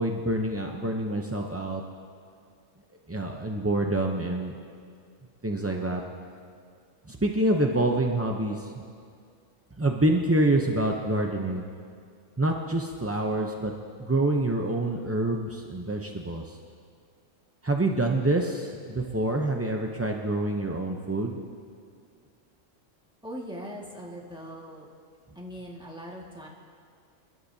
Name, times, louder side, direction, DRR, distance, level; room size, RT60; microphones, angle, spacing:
voice 1, 0.0-1.8 3.1-4.5 5.4-6.0 7.1-8.8 9.8-11.6 12.4-13.7 14.0-16.6 17.6-21.4, right 1 dB, 25° right, 1 dB, 0.3 m, -26 dB
voice 2, 23.2-24.9 25.4-26.5, equal, 5° right, -3 dB, 1.7 m, -40 dB
26.0 x 11.5 x 2.7 m, 2.2 s
omnidirectional pair, 1.3 m